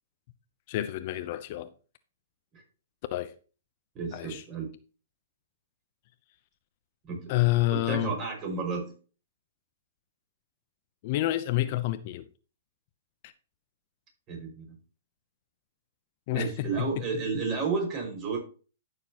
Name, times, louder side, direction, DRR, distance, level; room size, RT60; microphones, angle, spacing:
voice 1, 0.7-1.7 3.1-3.3 4.1-4.4 7.3-8.1 11.0-12.2 13.2-13.3 16.3-17.0, left 16 dB, 45° left, 0.7 m, -28 dB
voice 2, 3.9-4.7 7.1-7.3 7.7-8.9 14.3-14.8 16.3-18.4, right 4 dB, 30° right, 5.6 m, -32 dB
14.0 x 6.7 x 3.0 m
hypercardioid pair, 145°, 0 cm